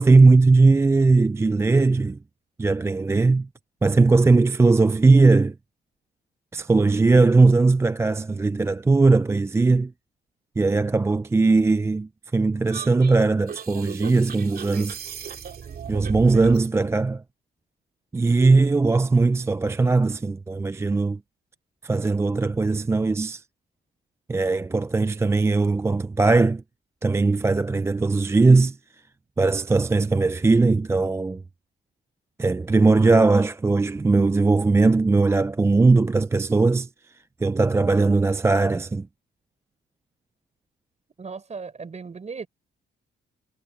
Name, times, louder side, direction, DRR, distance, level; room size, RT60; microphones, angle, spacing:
voice 1, 0.0-2.2 2.6-3.5 3.8-5.5 6.5-9.9 10.6-15.0 15.9-17.2 18.1-21.2 21.8-23.4 24.3-26.6 27.0-28.8 29.4-31.4 32.4-36.9 37.4-39.1, right 3 dB, 15° right, 0.4 m, -19 dB
sound 1, 12.7-16.7, right 7 dB, 50° right, 2.5 m, -36 dB
voice 2, 41.2-42.5, right 5 dB, 35° right, 4.5 m, -36 dB
cardioid pair, 90°, 20 cm